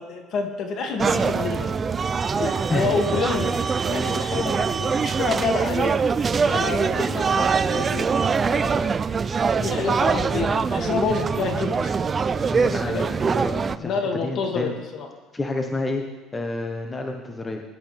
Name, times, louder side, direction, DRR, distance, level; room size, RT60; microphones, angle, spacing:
voice 1, 0.0-1.7 2.4-6.0 6.4-8.9 9.5-11.9 12.3-12.5 12.8-13.1 13.8-15.1, left 5 dB, 55° left, 2 dB, 2.4 m, -28 dB
sound 1, 1.0-13.8, right 5 dB, 30° right, 0.5 m, -23 dB
voice 2, 12.5-13.9 14.2-14.7 15.3-16.0 16.3-17.6, left 2 dB, 20° left, 3 dB, 1.3 m, -29 dB
20.0 x 11.5 x 3.5 m, 1.2 s
supercardioid pair, 105°, 0 cm